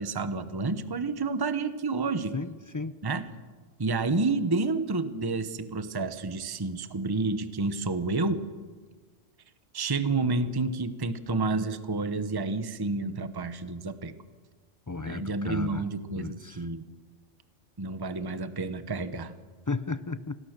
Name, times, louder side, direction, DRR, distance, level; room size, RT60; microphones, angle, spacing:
voice 1, 0.0-2.3 3.0-3.3 3.8-8.5 9.7-14.1 15.0-16.9 17.8-19.3, right 3 dB, 20° right, 11 dB, 0.9 m, -29 dB
voice 2, 2.3-3.0 14.9-15.8 16.2-16.6 19.7-20.3, left 3 dB, 30° left, 13 dB, 0.4 m, -34 dB
26.5 x 19.0 x 6.7 m, 1.4 s
omnidirectional pair, 1.3 m